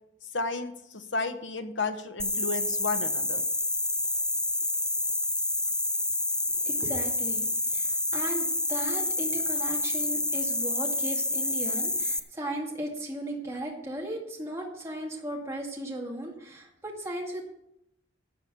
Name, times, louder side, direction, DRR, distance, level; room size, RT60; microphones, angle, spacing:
voice 1, 0.3-3.4, left 3 dB, 60° left, 8 dB, 1.1 m, -32 dB
sound 1, 2.2-12.2, left 1 dB, 5° left, 0.4 m, -28 dB
voice 2, 6.4-17.4, right 1 dB, 15° right, -2 dB, 2.2 m, -36 dB
13.0 x 7.1 x 6.9 m, 0.81 s
head